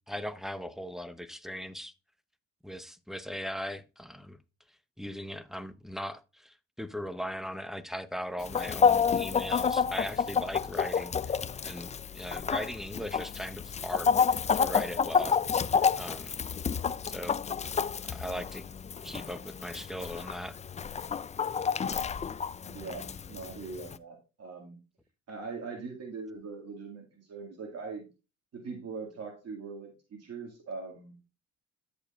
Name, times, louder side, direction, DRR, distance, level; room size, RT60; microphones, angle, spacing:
voice 1, 0.1-1.9 2.6-4.4 5.0-11.4 11.6-15.4 15.9-16.3 17.0-17.4 18.1-18.6 19.0-20.6, equal, ahead, 0.7 m, -39 dB
Chicken rooster, 8.4-24.0, left 6 dB, 25° left, 0.4 m, -29 dB
voice 2, 22.7-24.8 25.3-28.1 28.5-31.1, right 4 dB, 55° right, 2.1 m, -41 dB
13.0 x 5.2 x 2.4 m
cardioid pair, 90°, 30 cm